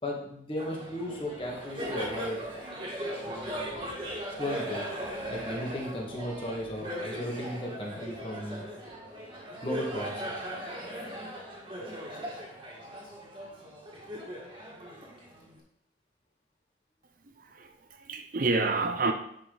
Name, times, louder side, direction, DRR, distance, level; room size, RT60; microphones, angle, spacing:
voice 1, 0.0-2.5 3.2-3.7 4.4-4.9 5.3-8.6 9.6-10.5, left 1 dB, 25° left, -1 dB, 1.7 m, -36 dB
Laughter, 0.6-15.6, equal, 25° right, 1.7 m, -38 dB
voice 2, 17.4-19.1, right 3 dB, 45° right, 6 dB, 0.6 m, -29 dB
10.0 x 5.1 x 4.0 m, 0.73 s
head